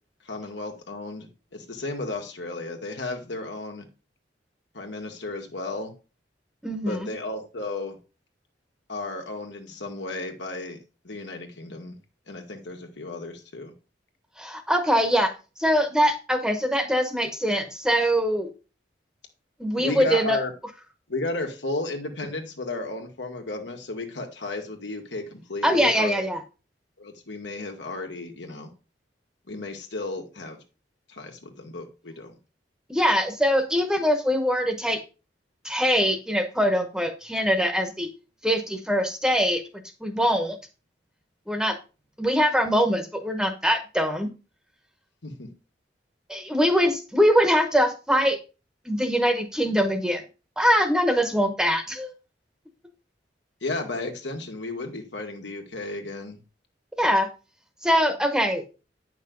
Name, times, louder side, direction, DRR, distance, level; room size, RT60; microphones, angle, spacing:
voice 1, 0.2-3.9 4.7-5.9 6.9-8.0 8.9-10.8 11.0-12.0 12.3-13.7 19.8-20.5 21.1-26.2 27.0-28.7 29.5-30.6 31.1-32.3 45.2-45.5 53.6-56.4, left 2 dB, 80° left, 3 dB, 1.7 m, -34 dB
voice 2, 6.6-7.1 14.4-15.3 15.6-18.5 19.6-20.4 25.6-26.4 32.9-35.0 35.6-38.1 38.4-39.6 40.0-40.6 41.5-41.8 42.2-44.3 46.3-48.4 48.8-50.2 50.6-52.1 57.0-57.3 57.8-58.6, equal, 5° right, 6 dB, 1.0 m, -23 dB
9.4 x 5.9 x 3.9 m, 0.32 s
head